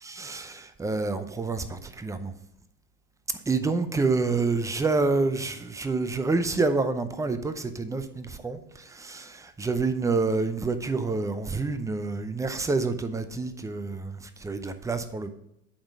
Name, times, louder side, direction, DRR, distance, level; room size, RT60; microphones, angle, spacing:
voice 1, 0.0-2.3 3.5-14.1 14.4-15.3, right 3 dB, 5° right, 0.5 m, -28 dB
8.7 x 3.7 x 6.0 m
hypercardioid pair, 80°, 44 cm